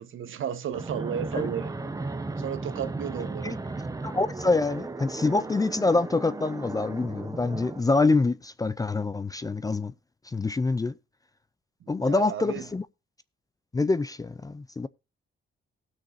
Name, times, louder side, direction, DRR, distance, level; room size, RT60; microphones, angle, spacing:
voice 1, 0.0-1.7 2.4-3.6 11.8-12.7, right 9 dB, 70° right, 1.4 m, -33 dB
Fixed-wing aircraft airplane, 0.7-7.8, right 3 dB, 15° right, 0.8 m, -35 dB
voice 2, 4.0-9.9 10.3-10.9 11.9-12.8 13.7-14.9, left 3 dB, 15° left, 0.4 m, -26 dB
19.0 x 6.4 x 2.6 m
wide cardioid pair, 145°, 21 cm